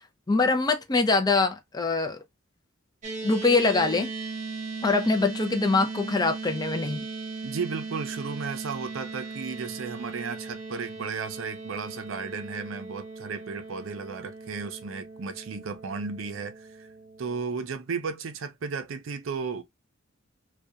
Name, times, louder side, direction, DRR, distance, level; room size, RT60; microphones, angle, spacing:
voice 1, 0.3-2.2 3.2-4.1 4.8-7.0, left 3 dB, 20° left, 0.4 m, -23 dB
sound 1, 3.0-17.4, right 4 dB, 40° right, 0.9 m, -38 dB
voice 2, 7.4-16.9 17.2-19.6, right 5 dB, 75° right, 0.5 m, -34 dB
2.7 x 2.2 x 2.3 m
head